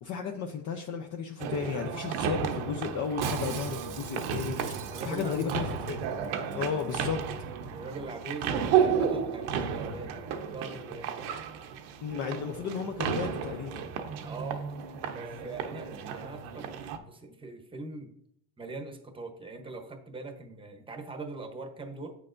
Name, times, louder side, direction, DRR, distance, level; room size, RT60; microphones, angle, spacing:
voice 1, 0.0-4.6 5.0-5.8 6.5-7.2 12.0-13.8, left 6 dB, 40° left, 4 dB, 0.7 m, -34 dB
sound 1, 1.4-17.0, right 7 dB, 80° right, 0.9 m, -33 dB
Shatter, 3.2-6.0 6.2-6.3 6.5-6.9 7.2-7.3, right 10 dB, 45° right, 0.8 m, -43 dB
voice 2, 4.9-5.6 7.7-11.1 14.2-14.6 15.1-18.1 18.6-22.2, right 3 dB, 10° right, 5 dB, 0.9 m, -41 dB
8.5 x 6.5 x 2.6 m, 0.73 s
cardioid pair, 120°, 44 cm